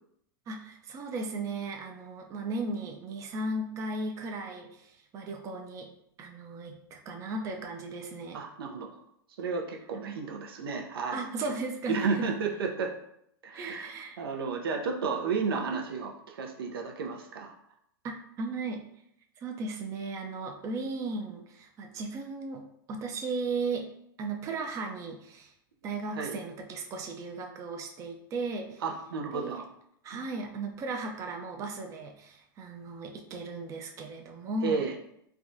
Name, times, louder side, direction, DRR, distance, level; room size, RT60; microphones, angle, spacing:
voice 1, 0.5-5.9 6.2-8.4 9.9-10.1 11.1-12.4 13.5-14.2 18.0-18.8 19.4-23.9 24.2-25.5 25.8-28.8 29.3-29.6 30.0-34.8, right 3 dB, 25° right, 2 dB, 0.4 m, -36 dB
voice 2, 8.3-8.9 9.4-11.2 11.9-12.9 13.4-17.6 26.1-26.4 28.8-29.6 34.6-34.9, right 5 dB, 85° right, 3 dB, 0.5 m, -32 dB
3.4 x 2.2 x 2.5 m, 0.73 s
hypercardioid pair, 120°, 12 cm